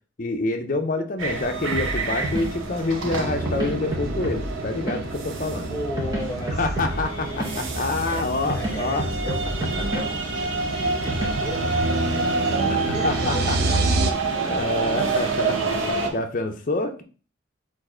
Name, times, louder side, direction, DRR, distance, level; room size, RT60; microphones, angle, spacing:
voice 1, 0.2-5.7 6.6-9.1 12.5-13.6 14.4-17.0, left 2 dB, 40° left, 5 dB, 0.6 m, -27 dB
sound 1, 1.2-16.1, right 4 dB, 85° right, 0.8 m, -28 dB
sound 2, 1.7-11.8, right 1 dB, 20° right, 1.0 m, -32 dB
sound 3, 3.0-14.1, right 2 dB, 50° right, 0.5 m, -30 dB
voice 2, 5.7-8.3 8.5-12.4 12.7-14.9, left 1 dB, 15° left, -1 dB, 1.0 m, -37 dB
4.4 x 2.5 x 4.3 m, 0.37 s
head